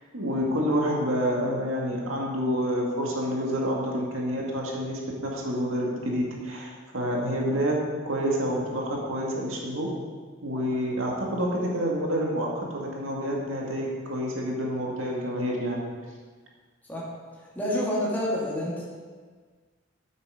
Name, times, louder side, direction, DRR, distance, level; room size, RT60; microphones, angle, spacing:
voice 1, 0.1-7.7 8.1-9.9 10.4-15.8, equal, 85° right, -2 dB, 2.0 m, -28 dB
voice 2, 17.6-18.9, left 1 dB, 10° left, -6 dB, 2.3 m, -28 dB
9.4 x 7.8 x 5.1 m, 1.5 s
head